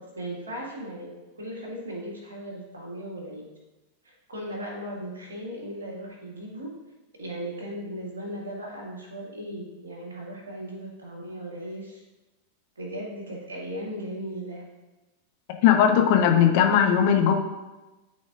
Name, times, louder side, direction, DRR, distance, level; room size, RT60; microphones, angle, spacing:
voice 1, 0.0-3.5 4.0-6.8 7.2-12.0 12.8-14.6, right 1 dB, 70° right, -1 dB, 1.9 m, -37 dB
voice 2, 15.6-17.3, left 8 dB, 45° left, 3 dB, 0.9 m, -18 dB
12.0 x 4.2 x 2.5 m, 1.1 s
figure-of-eight pair, 90°, 0 cm